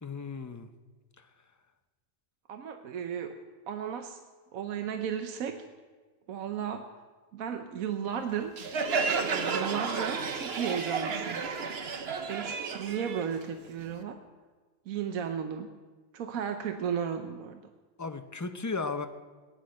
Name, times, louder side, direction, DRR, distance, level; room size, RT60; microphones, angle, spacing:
voice 1, 0.0-0.7 18.0-19.1, left 4 dB, 25° left, 7 dB, 0.4 m, -35 dB
voice 2, 2.5-3.3 3.7-4.2 4.5-5.6 6.3-6.8 7.3-8.5 9.3-11.7 12.3-14.2 14.9-15.7 16.1-17.6, right 8 dB, 75° right, 6 dB, 1.2 m, -34 dB
Crowd, 8.6-14.0, right 5 dB, 50° right, 1.1 m, -32 dB
17.5 x 10.5 x 6.4 m, 1.4 s
omnidirectional pair, 1.5 m